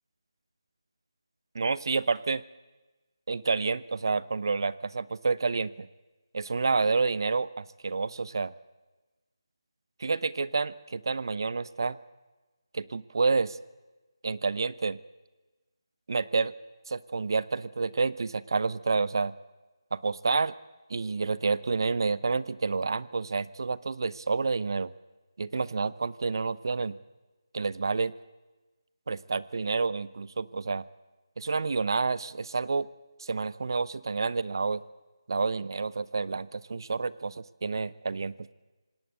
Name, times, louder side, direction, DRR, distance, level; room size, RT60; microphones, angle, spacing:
voice 1, 1.5-2.4 3.3-5.9 6.3-8.5 10.0-12.0 12.7-13.6 14.2-15.0 16.1-16.5 16.9-19.3 19.9-20.5 20.9-24.9 25.4-27.0 27.5-28.1 29.1-30.9 31.4-32.9 33.2-34.8 35.3-38.5, right 4 dB, 50° right, 18 dB, 0.8 m, -29 dB
26.5 x 18.5 x 8.0 m, 1.2 s
figure-of-eight pair, 165°, 3 cm